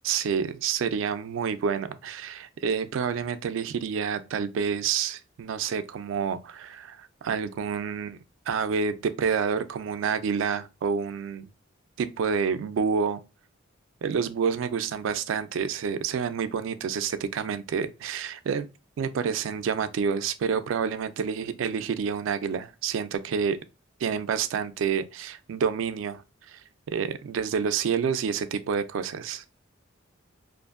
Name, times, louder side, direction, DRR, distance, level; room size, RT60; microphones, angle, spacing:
voice 1, 0.0-8.2 8.5-11.5 12.0-13.2 14.0-18.7 19.0-23.6 24.0-26.6 26.9-29.4, right 6 dB, 70° right, 0.3 m, -28 dB
2.6 x 2.5 x 2.4 m
head